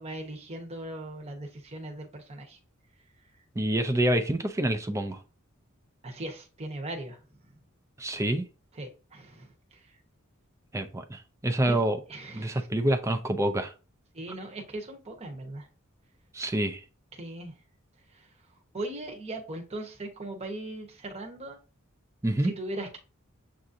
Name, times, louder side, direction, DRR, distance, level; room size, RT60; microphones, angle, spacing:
voice 1, 0.0-2.6 6.0-7.2 8.7-9.9 11.6-11.8 12.1-12.7 14.1-15.7 17.1-17.6 18.1-18.3 18.7-21.6 22.4-23.0, right 1 dB, 30° right, 0.9 m, -39 dB
voice 2, 3.6-5.2 8.0-8.5 10.7-12.0 12.3-13.7 16.3-16.8 22.2-22.5, right 1 dB, 15° right, 0.4 m, -27 dB
7.3 x 2.5 x 2.6 m
head